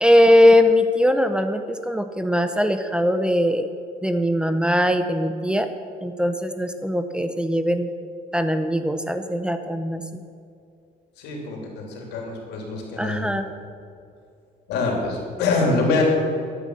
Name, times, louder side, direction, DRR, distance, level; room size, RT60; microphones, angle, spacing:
voice 1, 0.0-3.7 4.0-5.7 6.0-7.9 8.3-10.0 13.0-13.5, left 1 dB, 5° right, 8 dB, 0.8 m, -20 dB
voice 2, 11.2-13.3 14.7-16.0, left 3 dB, 85° left, 0 dB, 3.4 m, -25 dB
14.0 x 9.2 x 6.5 m, 2.4 s
cardioid pair, 110°, 17 cm